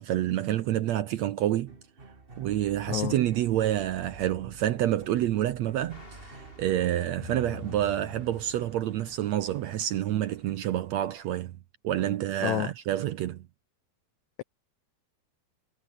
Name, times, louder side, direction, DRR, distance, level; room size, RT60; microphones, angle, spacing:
voice 1, 0.0-1.7 2.4-11.6 11.8-13.4, right 12 dB, 70° right, 1.7 m, -28 dB
sound 1, 1.7-7.9, right 3 dB, 20° right, 1.8 m, -49 dB
voice 2, 2.9-3.1 12.4-12.7, left 16 dB, 90° left, 1.6 m, -28 dB
sound 2, 5.9-11.3, left 2 dB, 15° left, 4.1 m, -55 dB
sound 3, 7.2-9.4, left 15 dB, 70° left, 2.1 m, -46 dB
omnidirectional pair, 4.0 m